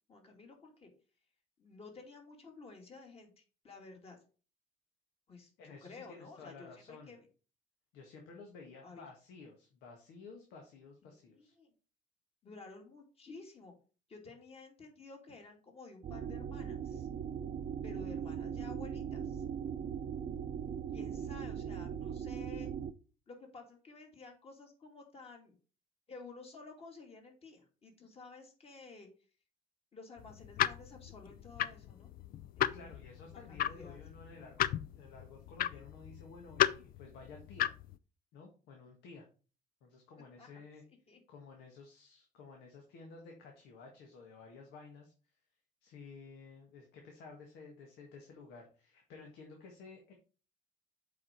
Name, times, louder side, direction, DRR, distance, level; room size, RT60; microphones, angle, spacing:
voice 1, 0.1-0.9 1.6-4.2 5.3-7.3 8.8-9.1 11.1-11.7 12.4-13.7 14.1-17.1 17.8-19.4 20.9-22.7 23.3-25.6 26.1-29.1 29.9-32.1 32.6-33.0 33.3-34.0 40.4-40.5 41.1-41.2, left 3 dB, 35° left, 2 dB, 2.6 m, -53 dB
voice 2, 5.6-7.1 7.9-11.5 32.7-37.7 38.3-39.3 39.8-40.8 41.3-45.1 45.8-50.1, left 4 dB, 85° left, 2 dB, 1.7 m, -53 dB
sound 1, 16.0-22.9, right 8 dB, 45° right, 0.6 m, -39 dB
sound 2, 30.2-38.0, left 11 dB, 60° left, 0.5 m, -35 dB
7.7 x 4.9 x 4.5 m, 0.36 s
cardioid pair, 110°, 17 cm